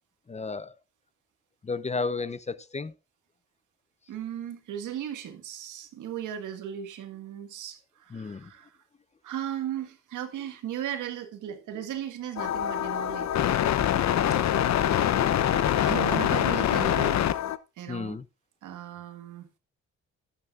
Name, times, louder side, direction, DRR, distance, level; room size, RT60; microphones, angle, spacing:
voice 1, 0.3-0.7 1.6-2.9 8.1-8.5 17.9-18.2, left 4 dB, 25° left, 0.6 m, -33 dB
voice 2, 4.1-8.7 9.2-13.3 15.8-17.2 17.8-18.2 18.6-19.5, right 10 dB, 90° right, 1.7 m, -36 dB
sound 1, 12.4-17.6, left 11 dB, 65° left, 0.7 m, -24 dB
11.0 x 9.8 x 2.4 m
cardioid pair, 80°, 30 cm